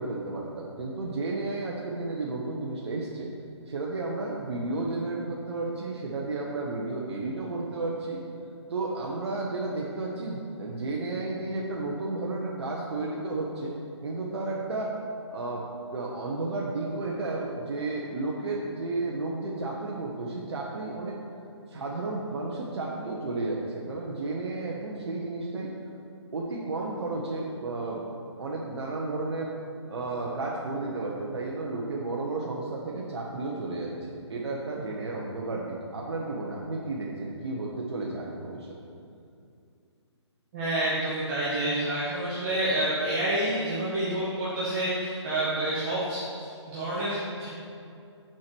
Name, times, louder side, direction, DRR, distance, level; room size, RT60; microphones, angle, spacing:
voice 1, 0.0-3.3 3.7-8.2 8.7-13.7 14.0-15.0 15.3-21.2 21.7-25.7 26.3-28.0 28.4-29.5 29.9-38.7, right 2 dB, 65° right, -3 dB, 1.0 m, -32 dB
voice 2, 40.5-47.5, right 1 dB, 25° right, -10 dB, 1.4 m, -28 dB
7.3 x 4.5 x 6.0 m, 2.5 s
hypercardioid pair, 165°, 15 cm